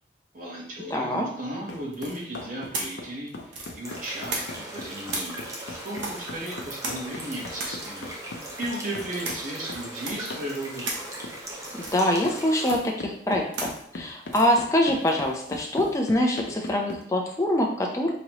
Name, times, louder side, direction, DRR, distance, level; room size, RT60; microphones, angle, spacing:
voice 1, 0.3-5.4 5.7-8.1 8.6-10.9, right 1 dB, 45° right, -3 dB, 1.1 m, -35 dB
voice 2, 0.9-1.3 11.8-18.1, left 1 dB, 15° left, 0 dB, 0.7 m, -24 dB
sound 1, 1.7-9.9 10.3-10.5 11.2-11.4 12.2-12.4 12.7-17.0, left 2 dB, 70° left, 0.7 m, -39 dB
sound 2, 1.9-4.7 5.1-16.0, right 2 dB, 90° right, 1.0 m, -38 dB
sound 3, 3.8-12.8, right 1 dB, 15° right, 0.7 m, -39 dB
5.2 x 3.0 x 3.0 m, 0.64 s
head